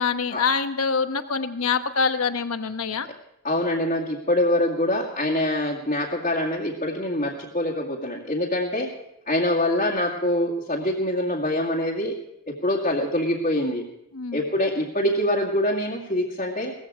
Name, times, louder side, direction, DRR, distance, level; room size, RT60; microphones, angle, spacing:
voice 1, 0.0-3.1 14.1-14.4, left 5 dB, 85° left, 9 dB, 1.1 m, -25 dB
voice 2, 3.4-8.9 9.3-12.1 12.5-13.8 14.3-16.7, left 1 dB, 35° left, -4 dB, 2.1 m, -24 dB
18.0 x 15.0 x 5.0 m, 0.85 s
head